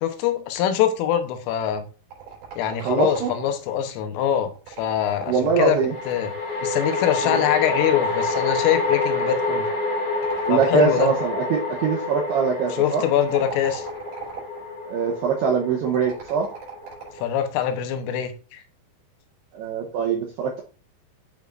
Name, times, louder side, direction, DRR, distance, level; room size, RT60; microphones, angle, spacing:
voice 1, 0.0-1.8 2.6-4.5 4.8-5.8 6.1-6.3 6.6-9.7 10.5-11.1 12.8-13.9 17.2-18.6, left 10 dB, 80° left, 3.4 m, -23 dB
sound 1, 2.1-3.7 4.5-6.4 7.4-9.2 10.2-11.5 13.1-14.7 15.9-17.3, right 6 dB, 50° right, 5.7 m, -39 dB
voice 2, 2.8-3.3 5.3-5.9 7.2-7.4 10.5-13.0 14.9-16.5 19.5-20.6, right 6 dB, 80° right, 2.3 m, -23 dB
sound 2, 2.9-3.0 5.9-17.2, left 3 dB, 40° left, 3.4 m, -28 dB
11.0 x 6.9 x 2.5 m
omnidirectional pair, 5.9 m